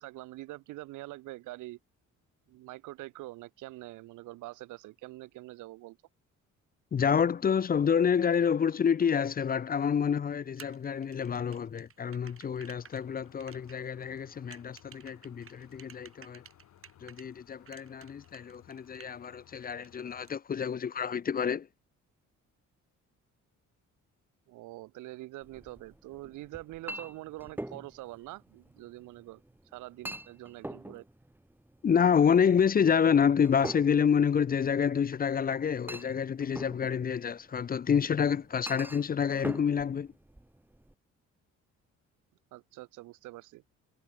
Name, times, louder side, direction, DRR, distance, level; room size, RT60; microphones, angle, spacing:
voice 1, 0.0-1.8 2.5-6.0 24.5-29.4 29.7-31.0 42.5-43.6, right 18 dB, 85° right, 0.6 m, -45 dB
voice 2, 6.9-16.4 17.0-21.7 31.8-40.1, left 7 dB, 30° left, 0.5 m, -28 dB
sound 1, 8.3-8.4 11.2-11.3 11.6-20.3, left 12 dB, 75° left, 5.3 m, -61 dB
sound 2, 10.6-17.3 17.7-19.3 19.6-20.3, right 7 dB, 45° right, 2.3 m, -54 dB
Chink clink, 25.4-40.9, right 1 dB, 5° right, 1.7 m, -45 dB
cardioid pair, 90°, 30 cm